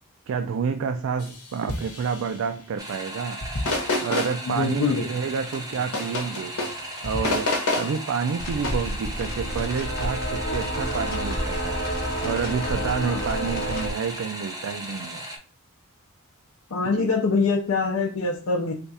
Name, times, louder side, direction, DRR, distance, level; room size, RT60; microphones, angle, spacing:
voice 1, 0.3-3.4 4.0-6.6 7.0-11.8 12.2-15.2 16.9-17.1, right 6 dB, 65° right, 8 dB, 0.3 m, -29 dB
sound 1, 1.2-1.4 1.7-2.3 3.4-4.4 5.2-6.8 7.0-8.0 8.6-8.7, left 2 dB, 90° left, 0.9 m, -28 dB
sound 2, 2.8-15.4, right 1 dB, 15° right, 0.6 m, -37 dB
voice 2, 4.5-5.1 13.0-13.2 16.7-18.7, left 4 dB, 70° left, 0 dB, 0.5 m, -24 dB
sound 3, 8.4-13.9, equal, 45° left, 0.8 m, -29 dB
3.4 x 2.3 x 4.0 m, 0.41 s
head